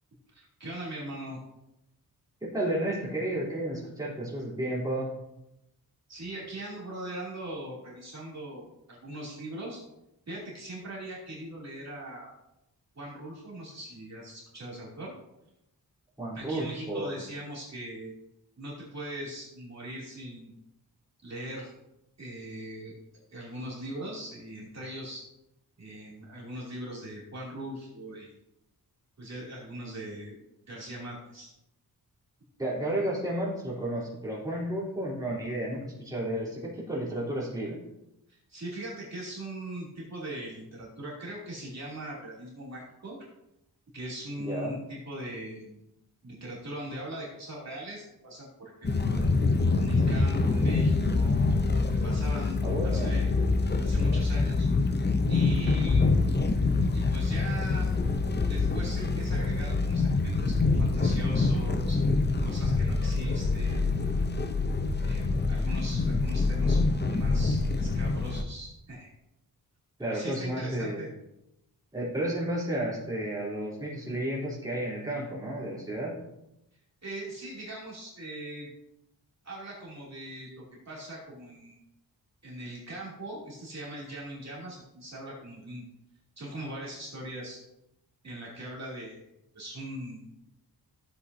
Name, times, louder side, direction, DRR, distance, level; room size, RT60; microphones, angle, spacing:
voice 1, 0.3-1.4 6.1-9.8 10.3-12.3 12.9-15.1 16.3-18.1 18.6-20.5 21.2-21.7 22.2-22.9 23.3-25.2 25.8-28.3 29.2-30.4 30.7-31.5 38.3-43.2 43.9-45.9 46.2-49.3 49.7-53.3 53.8-54.7 55.3-56.2 56.9-57.9 58.5-62.0 62.4-64.1 65.0-69.1 70.0-71.1 77.0-78.7 79.4-81.8 82.4-85.8 86.4-87.6 88.2-89.2 89.5-90.5, right 1 dB, 45° right, -6 dB, 2.8 m, -40 dB
voice 2, 2.4-5.1 16.2-17.1 32.6-37.8 44.4-44.8 52.6-53.2 70.0-71.1 71.9-76.2, right 1 dB, 10° right, -7 dB, 3.4 m, -32 dB
sound 1, 48.8-68.4, left 3 dB, 25° left, 0.7 m, -25 dB
14.0 x 8.0 x 2.7 m, 0.88 s
wide cardioid pair, 155°, 38 cm